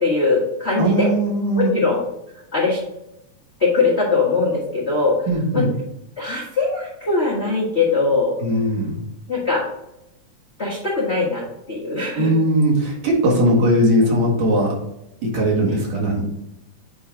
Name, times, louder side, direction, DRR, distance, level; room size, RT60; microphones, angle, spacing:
voice 1, 0.0-1.1 1.5-2.0 2.5-2.8 3.6-5.2 5.5-5.6 6.2-8.3 9.3-9.6 10.6-11.4 11.7-12.3, left 3 dB, 50° left, -5 dB, 0.7 m, -20 dB
voice 2, 0.8-1.7 5.3-5.7 8.4-8.9 12.1-14.7 15.2-16.2, right 1 dB, 65° right, -3 dB, 2.9 m, -19 dB
8.4 x 2.8 x 4.8 m, 0.84 s
omnidirectional pair, 3.5 m